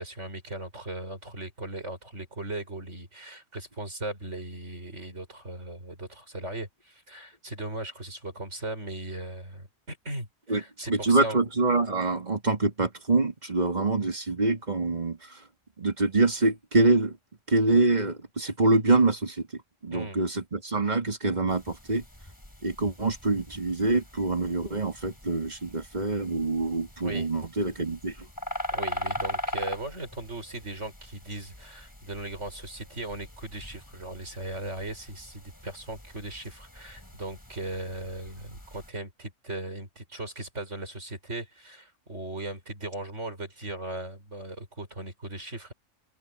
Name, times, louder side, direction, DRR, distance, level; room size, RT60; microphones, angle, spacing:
voice 1, 0.0-11.4 19.9-20.2 27.0-27.3 28.7-45.7, right 2 dB, 70° right, 6.9 m, -38 dB
voice 2, 10.9-15.4 15.8-17.2 17.5-22.0 22.6-28.3, right 2 dB, 35° right, 2.7 m, -25 dB
sound 1, 21.5-38.9, left 1 dB, 15° left, 4.1 m, -41 dB
omnidirectional pair, 1.3 m